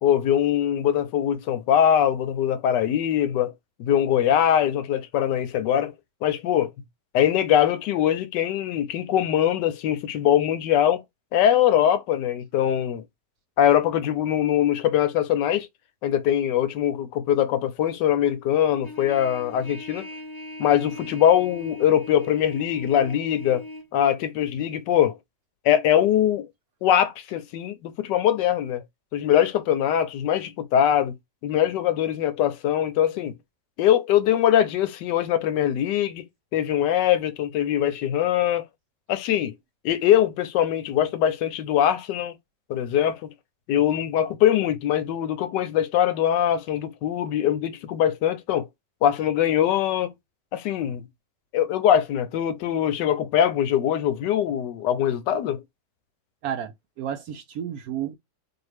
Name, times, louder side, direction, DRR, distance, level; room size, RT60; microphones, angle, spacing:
voice 1, 0.0-3.5 3.8-5.9 6.2-6.7 7.1-11.0 11.3-13.0 13.6-15.7 16.0-20.0 20.6-23.6 23.9-25.2 25.6-26.5 26.8-28.8 29.1-31.1 31.4-33.3 33.8-36.2 36.5-38.6 39.1-39.5 39.8-42.3 42.7-43.3 43.7-48.7 49.0-50.1 50.5-51.1 51.5-55.6, left 10 dB, 80° left, 1.2 m, -22 dB
Trumpet, 18.8-23.9, left 1 dB, 15° left, 1.1 m, -40 dB
voice 2, 56.4-58.2, right 10 dB, 70° right, 0.9 m, -32 dB
4.1 x 2.6 x 3.4 m
omnidirectional pair, 1.9 m